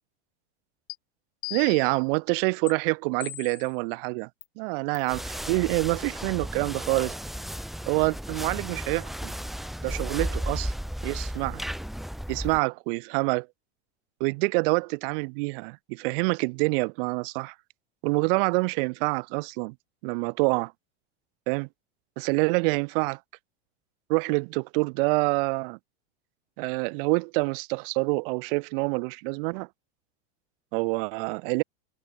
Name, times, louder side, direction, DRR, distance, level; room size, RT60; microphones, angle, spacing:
sound 1, 0.9-1.0 1.4-2.0 2.7-2.8 3.2-3.7 4.4-4.5 4.9-5.2, left 18 dB, 70° left, 7.3 m, -39 dB
voice 1, 1.5-4.3 4.6-7.1 7.9-9.3 9.8-10.7 11.0-11.6 12.3-13.5 14.2-17.5 18.0-19.7 20.0-20.7 21.5-21.7 22.2-23.2 24.1-25.8 26.6-29.7 30.7-31.6, right 31 dB, 50° right, 1.5 m, -26 dB
sound 2, 5.1-12.6, equal, ahead, 1.4 m, -34 dB
supercardioid pair, 160°, 34 cm